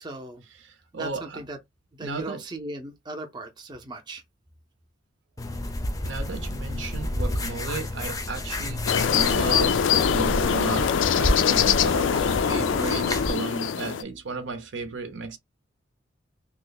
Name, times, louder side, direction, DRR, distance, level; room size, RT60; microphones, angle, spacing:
voice 1, 0.0-0.4 0.9-1.6 1.9-4.2, right 2 dB, 25° right, 0.6 m, -37 dB
voice 2, 0.6-1.4 2.0-2.4 6.0-15.4, right 3 dB, 70° right, 0.7 m, -34 dB
sound 1, 5.4-13.3, left 1 dB, 20° left, 0.5 m, -30 dB
sound 2, 8.9-14.0, left 8 dB, 75° left, 0.4 m, -23 dB
2.9 x 2.1 x 3.9 m
head